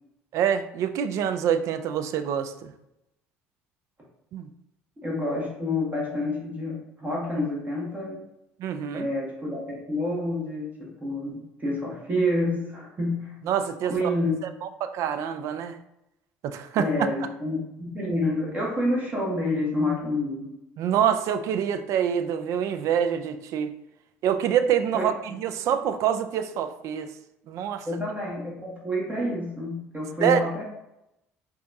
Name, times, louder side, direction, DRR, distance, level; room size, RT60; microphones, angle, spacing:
voice 1, 0.3-2.7 4.3-4.5 8.6-9.1 13.4-14.1 14.4-15.8 16.4-16.9 20.8-23.7 24.2-27.1 27.5-27.9 30.2-30.4, right 8 dB, 60° right, 10 dB, 0.3 m, -26 dB
voice 2, 5.0-8.2 8.9-13.4 13.9-14.4 16.8-20.5 24.9-25.1 27.8-30.6, left 1 dB, 30° right, -3 dB, 1.2 m, -28 dB
4.5 x 2.3 x 2.6 m, 0.86 s
hypercardioid pair, 65°, 6 cm